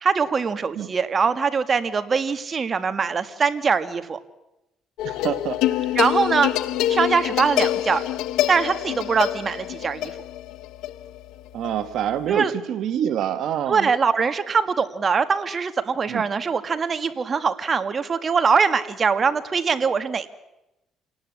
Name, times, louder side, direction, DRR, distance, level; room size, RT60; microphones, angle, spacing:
voice 1, 0.0-4.2 6.0-6.5 6.9-8.0 8.5-10.1 12.3-12.5 13.7-20.3, right 5 dB, 35° right, 10 dB, 1.7 m, -22 dB
sound 1, 5.0-12.4, left 13 dB, 90° left, 0.9 m, -26 dB
voice 2, 5.0-6.0 11.5-13.9 16.1-16.2, right 10 dB, 70° right, 11 dB, 1.2 m, -26 dB
27.5 x 19.0 x 8.3 m, 0.93 s
cardioid pair, 100°, 0 cm